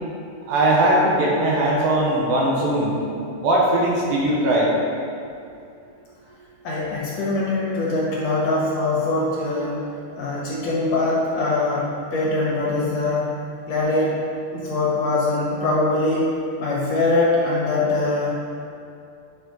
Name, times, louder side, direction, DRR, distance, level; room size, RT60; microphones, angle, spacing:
voice 1, 0.3-3.0 3.4-4.7, right 1 dB, 70° right, -3 dB, 2.5 m, -19 dB
voice 2, 6.6-9.8 10.2-13.3 13.7-18.4, left 2 dB, 65° left, -6 dB, 1.7 m, -22 dB
9.8 x 5.4 x 3.9 m, 2.4 s
omnidirectional pair, 4.8 m